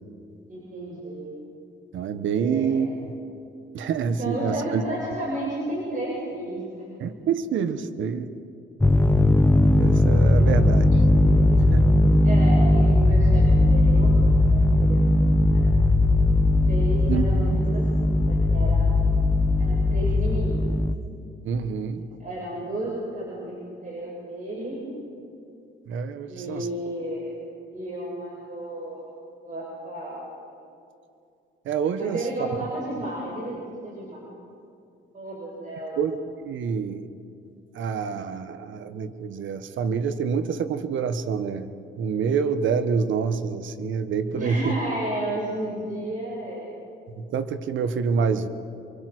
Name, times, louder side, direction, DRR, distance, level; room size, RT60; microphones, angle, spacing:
voice 1, 0.5-1.3 2.3-2.9 4.1-6.6 6.9-7.0 10.0-14.2 14.5-15.0 15.5-15.6 16.6-18.9 19.6-20.7 22.2-23.6 23.8-24.8 26.3-27.4 27.7-29.1 29.4-30.2 32.0-34.2 35.1-36.0 44.3-46.7, right 1 dB, 40° right, -3 dB, 7.0 m, -33 dB
voice 2, 1.9-3.1 3.7-4.8 7.0-8.3 9.8-10.8 11.7-12.0 17.1-17.2 17.5-17.6 21.4-22.0 25.9-26.7 31.6-32.2 36.0-36.2 36.5-37.1 37.7-41.7 42.0-44.8 47.1-48.5, right 6 dB, 75° right, 10 dB, 1.5 m, -27 dB
sound 1, 8.8-20.9, left 1 dB, 10° left, 1.1 m, -19 dB
29.0 x 24.5 x 6.3 m, 2.5 s
cardioid pair, 90°, 20 cm